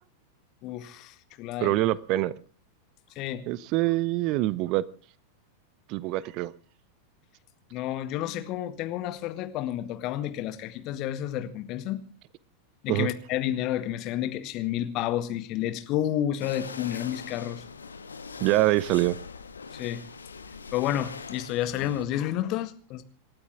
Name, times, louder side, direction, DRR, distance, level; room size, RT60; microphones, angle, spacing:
voice 1, 0.6-1.7 3.2-3.7 7.7-12.0 12.8-17.6 19.7-20.0 20.7-23.0, left 12 dB, 40° left, 1.9 m, -30 dB
voice 2, 1.6-2.3 3.5-4.8 5.9-6.5 12.9-13.1 18.4-19.2, right 17 dB, 40° right, 0.8 m, -24 dB
sound 1, 16.4-22.1, left 5 dB, 75° left, 1.6 m, -42 dB
27.5 x 12.5 x 3.6 m
figure-of-eight pair, 90°, 0 cm